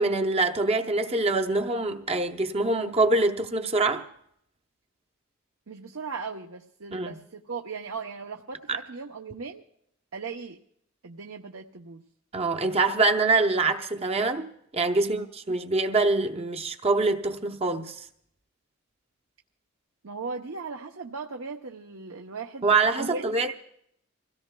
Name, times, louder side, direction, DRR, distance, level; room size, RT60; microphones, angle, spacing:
voice 1, 0.0-4.0 6.9-7.2 8.7-8.8 12.3-18.0 22.6-23.5, right 3 dB, 30° right, 0.7 m, -25 dB
voice 2, 5.7-9.6 10.1-10.6 11.0-12.0 15.0-15.3 20.0-22.7 23.0-23.5, right 4 dB, 75° right, 0.8 m, -38 dB
25.5 x 17.0 x 2.3 m
head